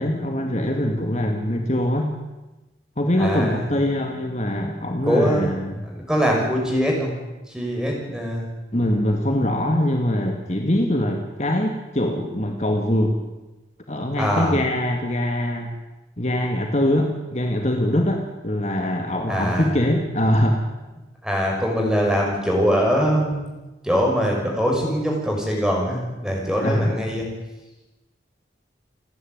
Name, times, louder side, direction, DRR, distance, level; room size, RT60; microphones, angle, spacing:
voice 1, 0.0-2.1 3.0-5.8 8.7-13.2 13.9-15.7 16.2-20.6 26.6-26.9, left 1 dB, 40° left, 2 dB, 2.1 m, -23 dB
voice 2, 3.2-3.7 5.1-5.5 5.8-7.1 7.5-8.5 14.2-14.6 19.3-19.7 21.2-23.5 23.8-27.2, equal, 5° right, -1 dB, 6.2 m, -22 dB
30.0 x 11.0 x 9.6 m, 1.1 s
head